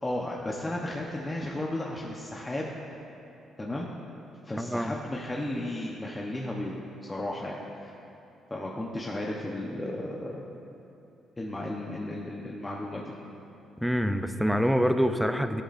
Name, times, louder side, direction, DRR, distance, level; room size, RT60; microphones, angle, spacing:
voice 1, 0.0-2.7 3.6-3.9 4.4-6.8 7.1-7.6 7.8-7.9 8.5-10.4 11.4-13.1, left 1 dB, 20° left, -3 dB, 1.0 m, -34 dB
voice 2, 4.6-4.9 13.8-15.6, equal, ahead, 8 dB, 0.6 m, -25 dB
14.0 x 11.5 x 2.6 m, 2.8 s
cardioid pair, 90°, 0 cm